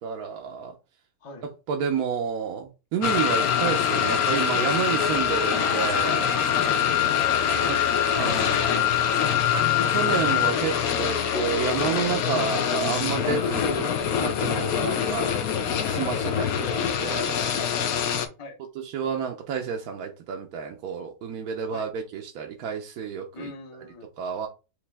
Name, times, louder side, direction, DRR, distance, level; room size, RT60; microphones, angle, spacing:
voice 1, 0.0-0.7 1.7-6.3 7.6-7.7 8.2-8.6 9.9-10.7 11.0-14.0 14.2-15.3 15.8-17.4 18.8-23.5 24.2-24.5, right 7 dB, 70° right, 1.1 m, -30 dB
sound 1, 3.0-18.3, left 8 dB, 70° left, 1.0 m, -24 dB
voice 2, 5.3-6.1 7.4-8.4 10.6-10.7 11.2-11.6 14.8-15.0 17.4-18.6 21.6-21.9 23.3-24.1, left 4 dB, 25° left, 0.7 m, -39 dB
sound 2, 8.1-11.5 12.4-17.2, left 12 dB, 90° left, 1.5 m, -38 dB
5.1 x 2.8 x 3.4 m
omnidirectional pair, 1.8 m